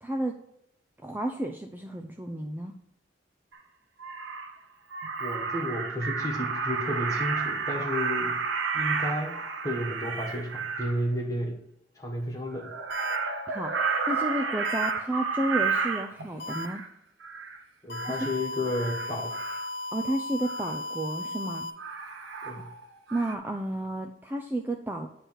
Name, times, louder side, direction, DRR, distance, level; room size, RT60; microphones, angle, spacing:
voice 1, 0.0-0.4 1.0-2.7 13.5-16.8 18.0-18.1 19.9-21.7 22.5-22.6 23.1-25.1, right 1 dB, 10° right, 4 dB, 0.3 m, -32 dB
Crow, 3.5-3.6 4.0-4.5 4.9-11.0 12.5-16.9 17.2-17.6 17.9-18.3 18.7-19.7 20.4-20.8 21.8-22.8 23.1-23.4, right 5 dB, 90° right, 0.8 m, -31 dB
voice 2, 5.2-8.4 8.7-9.4 9.6-11.6 11.9-12.7 17.8-19.3 22.4-22.7, left 1 dB, 20° left, -1 dB, 1.3 m, -32 dB
sound 1, 12.9-13.1 14.6-14.9 16.4-16.6 17.9-21.7, left 1 dB, 65° left, 1.4 m, -36 dB
9.2 x 3.3 x 6.2 m, 0.77 s
head